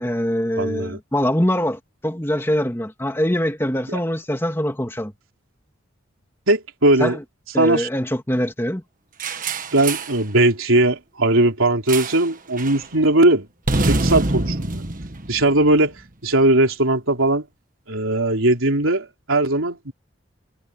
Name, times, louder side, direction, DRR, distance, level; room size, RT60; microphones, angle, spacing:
voice 1, 0.0-5.1 7.0-7.2 7.5-8.8, equal, 10° left, 2.2 m, -23 dB
voice 2, 0.6-1.0 3.9-4.0 6.5-7.2 7.6-7.9 9.7-13.5 13.8-14.9 15.3-16.0 16.2-17.5 17.9-19.9, right 2 dB, 85° right, 3.7 m, -19 dB
sound 1, 9.2-10.2 11.9-12.3 12.6-12.9 13.7-16.0, right 2 dB, 40° right, 1.5 m, -25 dB
head